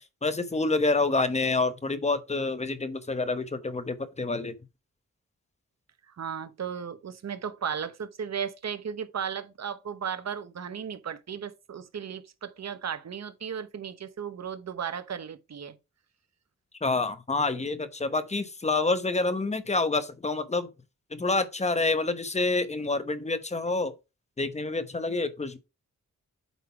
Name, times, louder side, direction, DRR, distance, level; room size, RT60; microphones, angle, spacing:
voice 1, 0.0-4.5 16.8-20.7 21.1-23.9 24.4-25.6, left 3 dB, 20° left, 0.9 m, -27 dB
voice 2, 6.1-15.8, right 7 dB, 60° right, 0.9 m, -35 dB
8.2 x 3.8 x 4.6 m
wide cardioid pair, 130°, 31 cm